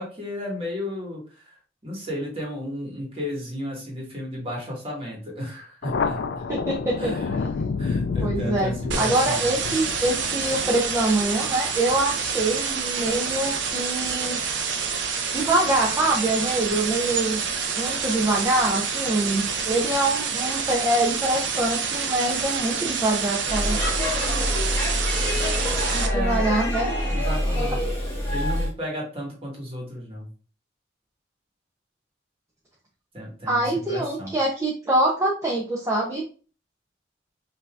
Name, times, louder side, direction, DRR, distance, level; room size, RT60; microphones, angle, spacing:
voice 1, 0.0-1.6 1.8-6.4 7.0-7.4 7.8-9.5 26.0-26.6 27.1-27.8 28.3-30.3 33.1-34.3, left 1 dB, 30° right, -2 dB, 1.4 m, -33 dB
Thunder, 5.8-12.9, left 4 dB, 65° left, 0.3 m, -30 dB
voice 2, 6.5-7.1 8.2-8.7 9.0-14.4 15.3-17.4 17.8-23.8 25.9-26.9 27.5-27.6 33.5-36.2, right 2 dB, 15° right, -3 dB, 0.5 m, -24 dB
sound 1, 8.9-26.1, right 5 dB, 70° right, 0.6 m, -27 dB
Speech / Shout / Subway metro underground, 23.5-28.7, left 1 dB, 15° left, 1.3 m, -25 dB
5.3 x 2.7 x 2.3 m, 0.37 s
head